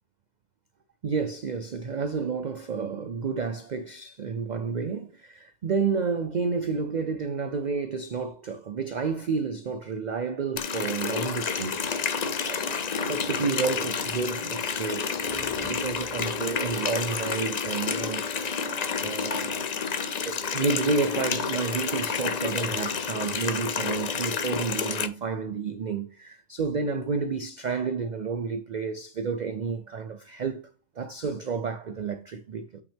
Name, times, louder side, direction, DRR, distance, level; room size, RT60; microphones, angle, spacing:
voice 1, 1.0-12.6 13.1-15.1 15.6-18.3 19.0-19.7 20.1-30.7 31.0-32.8, right 5 dB, 80° right, 0.4 m, -30 dB
Water tap faucet, 10.6-25.1, left 6 dB, 50° left, 0.5 m, -30 dB
sound 1, 15.1-16.7, left 2 dB, 25° left, 2.6 m, -45 dB
8.3 x 5.8 x 3.5 m
omnidirectional pair, 1.4 m